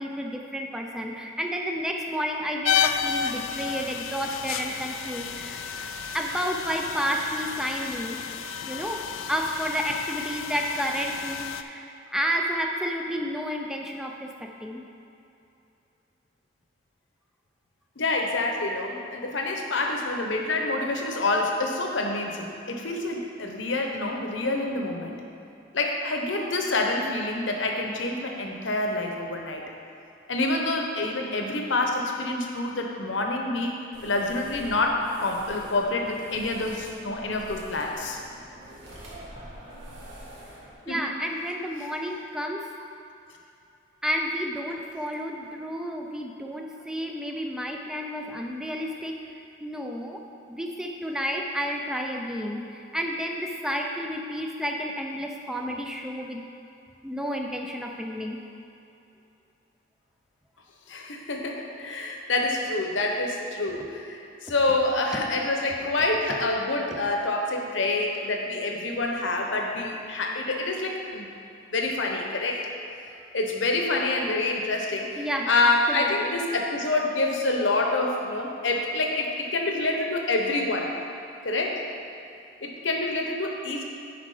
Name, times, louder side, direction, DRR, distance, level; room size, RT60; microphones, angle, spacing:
voice 1, 0.0-5.6 6.1-8.2 8.7-14.9 40.9-42.7 44.0-49.2 49.6-50.2 50.5-56.4 57.0-58.4 62.0-62.1 75.2-76.4, equal, 5° right, 1 dB, 0.5 m, -31 dB
sound 1, 2.6-11.6, left 8 dB, 90° left, 0.4 m, -31 dB
voice 2, 18.0-25.2 25.7-29.6 30.3-38.2 40.9-41.1 41.8-41.9 60.9-71.3 71.7-72.7 73.3-80.9 81.4-81.8 82.6-83.8, left 2 dB, 65° left, 2 dB, 1.0 m, -27 dB
sound 2, 33.9-40.7, right 1 dB, 70° right, 1.7 m, -45 dB
9.5 x 4.9 x 4.9 m, 2.8 s
head